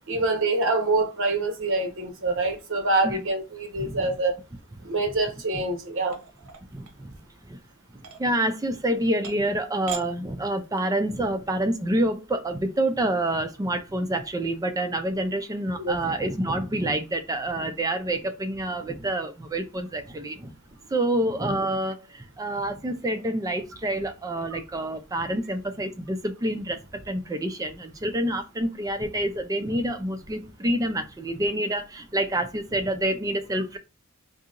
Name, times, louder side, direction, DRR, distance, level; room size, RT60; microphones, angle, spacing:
voice 1, 0.1-4.4 4.8-6.2 15.8-16.0, right 2 dB, 60° right, 1.0 m, -25 dB
sound 1, 6.1-7.3 8.0-8.2 8.9-9.0 9.2-9.6 9.9-10.0 10.4-10.9, right 7 dB, 85° right, 0.8 m, -39 dB
voice 2, 6.7-7.1 7.5-7.6 7.9-20.5 20.9-33.8, right 1 dB, 15° right, 0.4 m, -27 dB
3.9 x 2.7 x 2.4 m
head